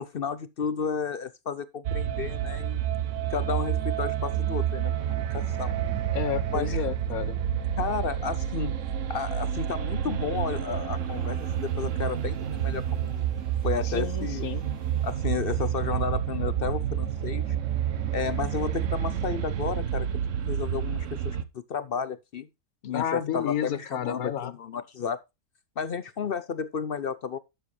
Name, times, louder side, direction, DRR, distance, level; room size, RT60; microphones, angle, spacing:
voice 1, 0.0-2.8 3.3-5.7 6.5-6.8 7.8-8.7 9.1-13.3 13.6-14.5 15.0-17.6 18.1-20.1 20.5-22.5 22.8-25.2 25.8-27.4, left 6 dB, 55° left, 0.7 m, -32 dB
sound 1, 1.8-21.4, right 10 dB, 60° right, 1.1 m, -29 dB
voice 2, 6.1-7.4 13.8-14.6 22.9-24.5, left 9 dB, 80° left, 1.4 m, -31 dB
sound 2, 10.4-15.8, right 1 dB, 90° right, 6.4 m, -59 dB
11.5 x 7.4 x 3.2 m
omnidirectional pair, 1.5 m